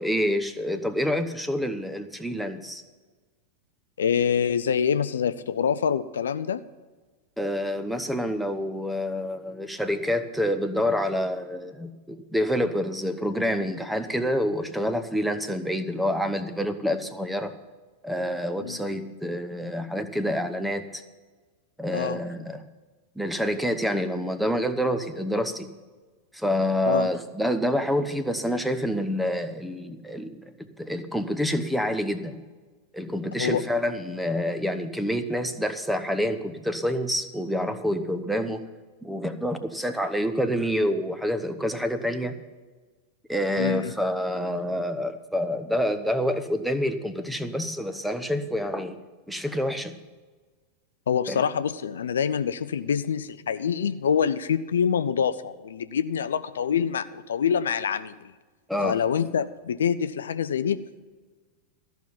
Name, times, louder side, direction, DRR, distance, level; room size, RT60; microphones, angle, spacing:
voice 1, 0.0-2.8 7.4-17.6 18.0-21.0 21.8-22.6 23.2-25.7 26.3-32.4 32.9-38.7 39.0-42.4 43.3-49.0 49.3-50.0 51.3-51.4 58.7-59.0, equal, ahead, 9 dB, 0.9 m, -27 dB
voice 2, 4.0-6.6 18.6-18.8 21.9-22.2 26.9-27.1 33.4-33.6 43.6-43.9 51.1-58.3 58.8-61.0, left 7 dB, 65° left, 13 dB, 0.4 m, -26 dB
13.5 x 5.7 x 9.0 m, 1.3 s
figure-of-eight pair, 90°, 0 cm